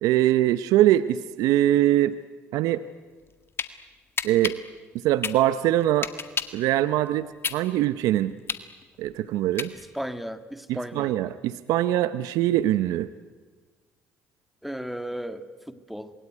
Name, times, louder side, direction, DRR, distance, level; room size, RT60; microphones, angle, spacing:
voice 1, 0.0-2.2 2.5-2.8 4.2-4.6 5.0-6.1 6.5-8.3 9.0-9.7 10.7-13.1, right 13 dB, 75° right, 13 dB, 0.8 m, -22 dB
sound 1, 3.1-3.7 4.2-6.6 7.1-10.1, left 6 dB, 40° left, 1.8 m, -31 dB
voice 2, 9.9-11.2 14.6-16.1, equal, ahead, 9 dB, 2.0 m, -35 dB
26.5 x 21.5 x 9.5 m, 1.4 s
supercardioid pair, 70°, 6 cm